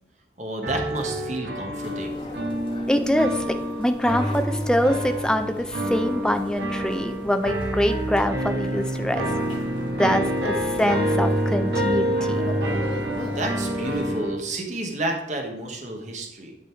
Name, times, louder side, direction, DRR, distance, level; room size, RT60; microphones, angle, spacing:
voice 1, 0.4-2.2 13.1-16.6, right 1 dB, 40° right, 3 dB, 1.2 m, -31 dB
sound 1, 0.6-14.3, right 1 dB, 70° right, 2.0 m, -27 dB
sound 2, 1.8-14.1, left 1 dB, 30° left, 2.5 m, -41 dB
voice 2, 2.9-9.3 10.0-12.5, equal, 5° left, 7 dB, 0.5 m, -24 dB
11.0 x 4.0 x 4.5 m, 0.92 s
head